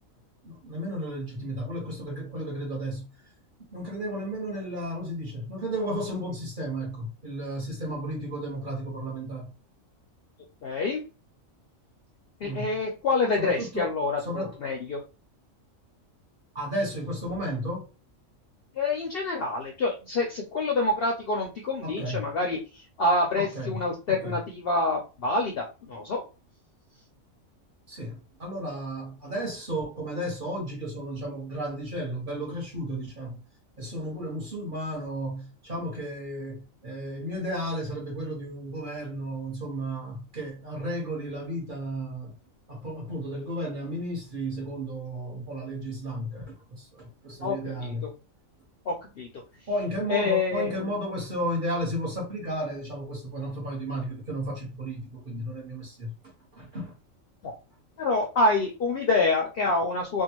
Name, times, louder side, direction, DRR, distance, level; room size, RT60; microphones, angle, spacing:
voice 1, 0.4-3.1 3.7-9.5 12.4-12.8 13.4-13.9 14.2-14.5 16.5-17.9 21.8-22.3 23.4-23.8 24.2-24.4 27.9-33.4 33.8-42.3 42.7-48.1 49.7-56.1 56.5-56.9, equal, 40° right, 1.2 m, -33 dB
voice 2, 10.6-11.0 12.4-15.0 18.7-26.2 47.4-48.1 48.9-49.3 50.1-50.9 57.4-57.5 58.0-60.2, left 3 dB, 65° left, 0.6 m, -27 dB
2.6 x 2.2 x 2.9 m
omnidirectional pair, 1.4 m